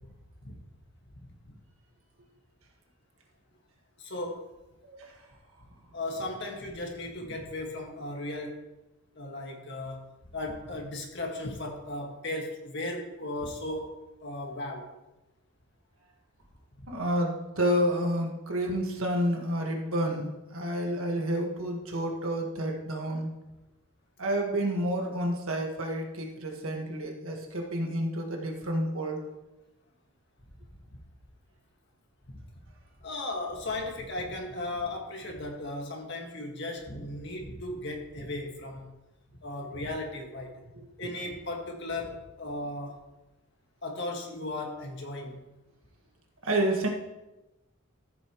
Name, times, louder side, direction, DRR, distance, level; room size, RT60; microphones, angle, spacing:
voice 1, 1.2-1.5 4.0-4.4 5.9-8.6 9.2-10.0 10.3-14.0 14.2-14.9 32.3-32.4 33.0-38.9 39.4-40.5 41.0-43.0 43.8-45.4, left 2 dB, 55° left, 1 dB, 1.9 m, -36 dB
voice 2, 16.9-23.3 24.2-29.2 40.7-41.1 46.4-46.9, right 1 dB, 75° right, 1 dB, 1.7 m, -30 dB
14.0 x 8.6 x 3.1 m, 1.0 s
head